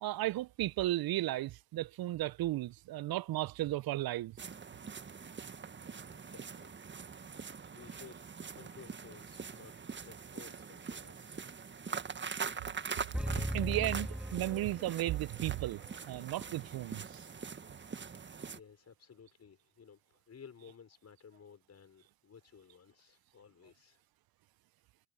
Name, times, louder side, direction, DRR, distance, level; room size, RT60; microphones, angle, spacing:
voice 1, 0.0-4.4 13.2-15.8 16.1-17.2, right 15 dB, 50° right, 1.4 m, -34 dB
sound 1, 4.4-18.6, right 6 dB, 25° right, 1.7 m, -43 dB
voice 2, 6.1-7.4 7.7-8.2 8.5-11.4 18.5-24.0, left 6 dB, 35° left, 6.2 m, -56 dB
sound 2, 13.1-15.3, right 1 dB, ahead, 0.9 m, -37 dB
hypercardioid pair, 60°, 45 cm